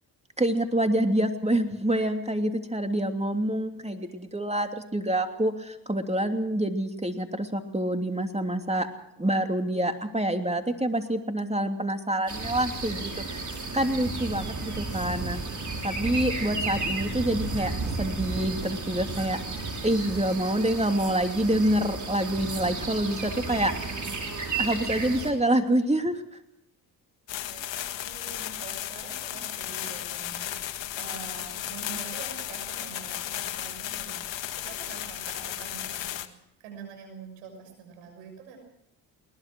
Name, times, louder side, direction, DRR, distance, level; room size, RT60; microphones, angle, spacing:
voice 1, 0.4-8.9 9.2-15.4 15.8-17.7 18.0-19.4 19.8-24.1 24.6-26.2, right 1 dB, 15° right, 6 dB, 3.0 m, -27 dB
sound 1, 12.3-25.3, right 3 dB, 35° right, 5.3 m, -33 dB
sound 2, 27.3-36.3, left 12 dB, 65° left, 1.6 m, -35 dB
voice 2, 27.4-36.2 36.6-38.6, right 6 dB, 90° right, 4 dB, 6.2 m, -45 dB
21.5 x 19.5 x 6.2 m, 0.80 s
hypercardioid pair, 50°, 48 cm